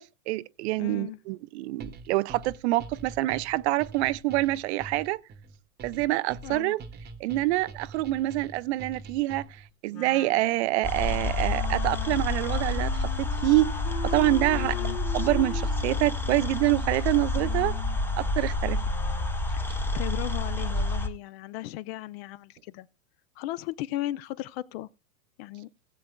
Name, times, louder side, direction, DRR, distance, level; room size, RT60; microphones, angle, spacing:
voice 1, 0.0-5.2 5.8-6.8 7.2-9.4 9.8-13.8 14.0-14.7 15.1-17.7 18.2-18.8, right 18 dB, 50° right, 0.5 m, -26 dB
voice 2, 0.8-1.2 6.4-6.7 14.5-15.0 19.5-22.9 23.4-24.9 25.4-25.7, left 15 dB, 45° left, 0.6 m, -36 dB
sound 1, 1.8-9.7, right 3 dB, 25° right, 1.0 m, -44 dB
Wind instrument woodwind instrument, 9.9-19.4, left 6 dB, 70° left, 1.5 m, -41 dB
sound 2, 10.8-21.1, left 2 dB, 5° left, 0.6 m, -29 dB
18.0 x 7.8 x 2.2 m
hypercardioid pair, 105°, 43 cm